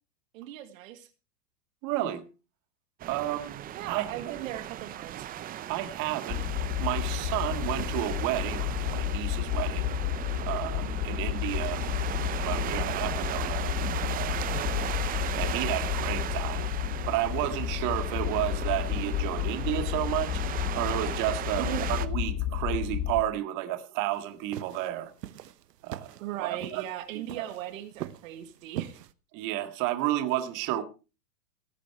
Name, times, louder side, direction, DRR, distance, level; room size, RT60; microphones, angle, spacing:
voice 1, 0.3-1.1 3.7-5.3 21.6-21.9 26.2-29.0, right 12 dB, 55° right, 2.0 m, -38 dB
voice 2, 1.8-2.2 3.1-3.6 3.9-4.1 4.4-4.5 5.7-6.4 6.8-9.9 10.4-11.8 12.1-13.8 14.1-14.4 15.4-16.7 17.1-20.4 20.7-25.1 25.8-26.1 26.4-26.8 27.1-27.4 29.3-30.8, right 14 dB, 40° right, 2.0 m, -31 dB
sound 1, 3.0-22.1, right 11 dB, 20° right, 0.7 m, -37 dB
sound 2, 6.3-23.2, left 13 dB, 30° left, 2.1 m, -31 dB
sound 3, 24.1-29.1, right 12 dB, 80° right, 1.2 m, -41 dB
17.5 x 9.3 x 4.7 m
hypercardioid pair, 130°, 47 cm